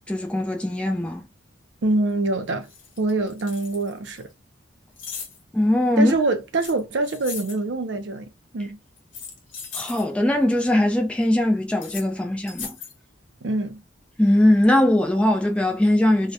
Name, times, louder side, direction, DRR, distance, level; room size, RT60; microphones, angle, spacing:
voice 1, 0.1-1.2 5.5-6.1 9.7-12.8 14.2-16.3, left 1 dB, 5° left, 0.4 m, -20 dB
voice 2, 1.8-2.7 3.0-4.3 6.0-8.8 13.4-13.8, right 2 dB, 70° right, 0.5 m, -25 dB
sound 1, 2.1-2.2 2.6-4.2 5.0-5.4 6.6-7.6 9.0-10.1 11.7-12.1 12.5-13.0, left 6 dB, 85° left, 0.8 m, -38 dB
2.1 x 2.1 x 2.7 m
head